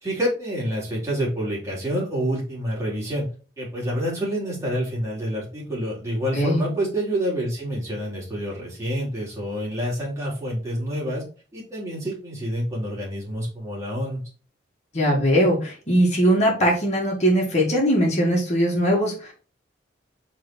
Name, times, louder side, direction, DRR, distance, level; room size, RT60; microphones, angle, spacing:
voice 1, 0.0-3.3 3.6-11.2 11.5-14.2, equal, 15° right, -6 dB, 3.3 m, -27 dB
voice 2, 6.3-6.6 14.9-19.3, equal, 35° left, -2 dB, 2.4 m, -20 dB
4.9 x 4.4 x 4.4 m, 0.37 s
head